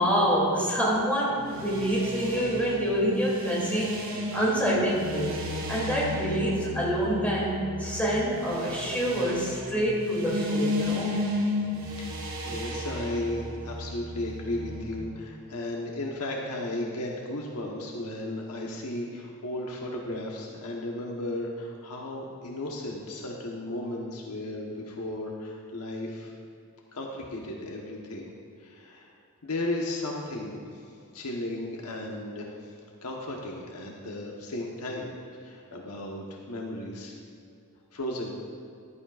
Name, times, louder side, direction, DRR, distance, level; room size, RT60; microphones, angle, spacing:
voice 1, 0.0-3.9 4.3-5.4 5.7-11.1, equal, 5° left, -6 dB, 2.8 m, -26 dB
sound 1, 1.4-15.0, left 1 dB, 60° right, 2.0 m, -34 dB
voice 2, 11.8-12.2 12.4-26.3 26.9-28.3 28.6-29.1 29.4-30.8 31.1-32.7 33.0-35.1 35.4-37.1 37.9-38.3, left 1 dB, 85° left, -1 dB, 1.2 m, -35 dB
14.0 x 11.5 x 2.5 m, 2.4 s
head